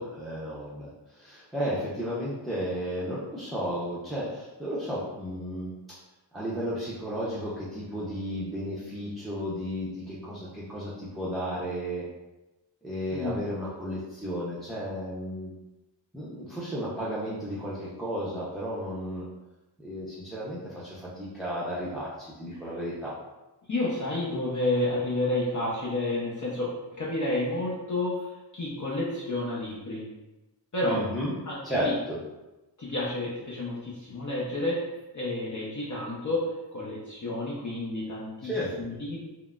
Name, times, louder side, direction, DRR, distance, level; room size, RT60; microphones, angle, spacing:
voice 1, 0.0-5.7 6.3-12.0 12.8-15.5 16.1-19.3 19.8-23.1 30.8-31.3 31.6-32.2 38.4-38.7, equal, ahead, -9 dB, 0.6 m, -33 dB
voice 2, 13.1-13.4 23.7-30.1 30.7-31.0 31.5-31.9 32.8-34.8 35.1-38.5 38.8-39.2, left 2 dB, 40° left, -6 dB, 0.6 m, -30 dB
3.6 x 2.0 x 2.3 m, 1.0 s
wide cardioid pair, 65°, 45 cm